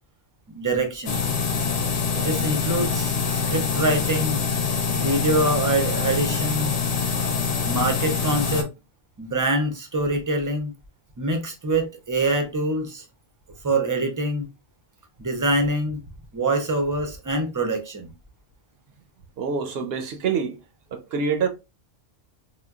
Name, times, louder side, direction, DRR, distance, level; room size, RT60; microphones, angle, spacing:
voice 1, 0.5-1.2 2.2-4.4 4.9-6.7 7.7-8.7 9.2-10.7 11.2-13.0 13.6-14.5 15.2-16.0 16.3-18.1, right 2 dB, 25° right, 0.4 m, -25 dB
sound 1, 1.1-8.6, left 5 dB, 80° left, 0.9 m, -25 dB
voice 2, 19.4-20.6 20.9-21.5, right 5 dB, 70° right, 0.8 m, -26 dB
3.6 x 2.2 x 2.2 m
omnidirectional pair, 1.1 m